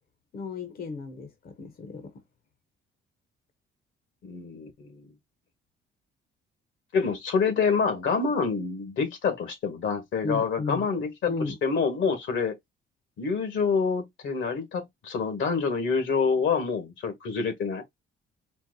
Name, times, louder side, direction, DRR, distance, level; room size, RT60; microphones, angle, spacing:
voice 1, 0.3-2.1 10.2-10.9 11.3-11.6, left 3 dB, 50° left, 0.9 m, -34 dB
voice 2, 4.2-5.1 6.9-11.3 11.6-12.6 13.2-17.8, left 5 dB, 75° left, 1.6 m, -27 dB
4.4 x 2.1 x 3.9 m
cardioid pair, 90°, 20 cm